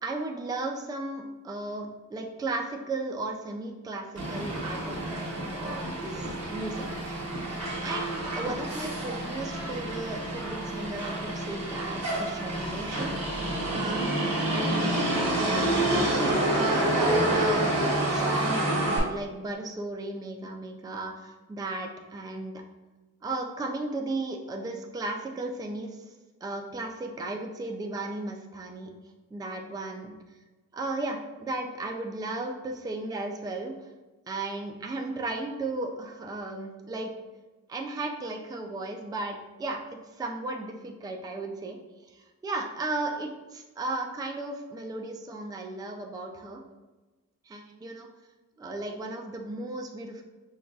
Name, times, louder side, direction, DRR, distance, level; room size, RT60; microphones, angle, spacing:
voice 1, 0.0-7.2 7.8-13.1 13.7-14.9 15.4-17.7 18.1-18.7 19.1-22.6 23.2-26.0 26.4-28.9 29.3-30.1 30.7-33.7 34.3-37.1 37.7-39.8 40.1-41.8 42.1-46.6 47.5-48.1 48.6-50.2, right 2 dB, 15° right, 2 dB, 0.3 m, -35 dB
Motor vehicle (road), 4.2-19.0, right 1 dB, 50° right, 1.1 m, -28 dB
5.3 x 2.2 x 2.3 m, 1.2 s
wide cardioid pair, 110°, 32 cm